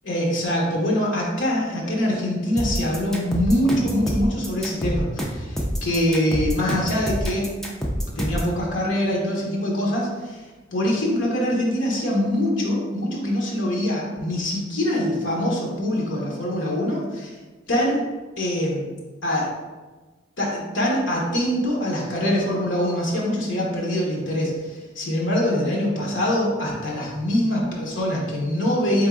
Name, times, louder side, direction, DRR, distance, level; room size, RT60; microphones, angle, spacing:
voice 1, 0.0-7.6 8.2-10.5 10.7-17.4 17.7-18.0 18.4-18.9 19.2-19.5 20.4-29.1, left 1 dB, 80° left, -3 dB, 1.0 m, -24 dB
sound 1, 2.6-8.5, equal, ahead, 0.5 m, -27 dB
3.8 x 3.6 x 3.6 m, 1.3 s
head